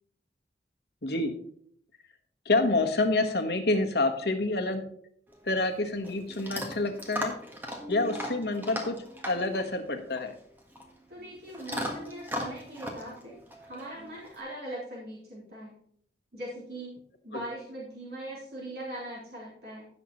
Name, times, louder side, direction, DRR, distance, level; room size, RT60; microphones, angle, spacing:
voice 1, 1.0-1.3 2.4-4.8 5.4-7.4 7.9-9.0 9.3-10.3 17.3-17.4, left 2 dB, 65° left, 4 dB, 1.3 m, -27 dB
Chewing mastication / Dog, 5.3-14.4, equal, 10° right, 1.4 m, -39 dB
voice 2, 11.1-15.7 16.3-16.9 17.2-19.8, right 1 dB, 60° right, -7 dB, 3.7 m, -41 dB
16.0 x 6.4 x 3.0 m, 0.63 s
head